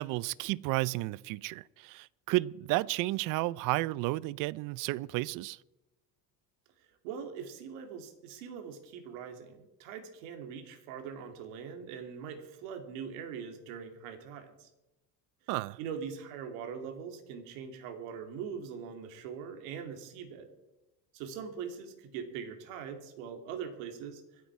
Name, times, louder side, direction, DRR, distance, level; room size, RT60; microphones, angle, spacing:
voice 1, 0.0-5.6 15.5-15.8, right 19 dB, 55° right, 0.5 m, -32 dB
voice 2, 7.0-14.7 15.8-20.5 21.1-24.5, right 7 dB, 80° right, 2.7 m, -42 dB
25.5 x 8.6 x 4.7 m
cardioid pair, 145°, 40 cm